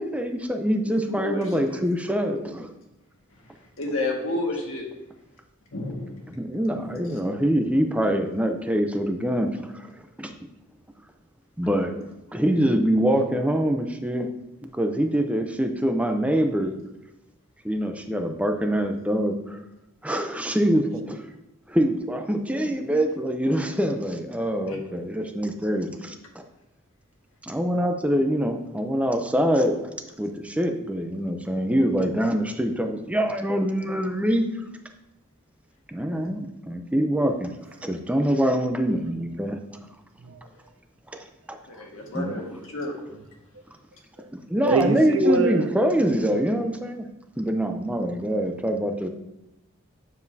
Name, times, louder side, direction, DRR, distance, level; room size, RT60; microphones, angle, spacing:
voice 1, 0.0-2.7 6.4-9.9 10.2-10.3 11.6-12.0 12.3-14.3 14.7-16.7 17.6-19.6 20.0-21.2 21.7-26.4 27.4-29.8 30.2-34.4 35.9-37.5 37.8-39.6 42.1-42.4 44.5-47.1 47.4-49.1, equal, 5° right, 5 dB, 0.6 m, -24 dB
voice 2, 0.8-1.8 3.8-4.9 5.7-6.3 6.6-7.2 24.7-24.8 41.7-43.0, left 2 dB, 80° left, -1 dB, 1.8 m, -31 dB
voice 3, 44.6-45.7, right 2 dB, 85° right, 7 dB, 0.7 m, -23 dB
9.3 x 7.2 x 2.7 m, 0.91 s
head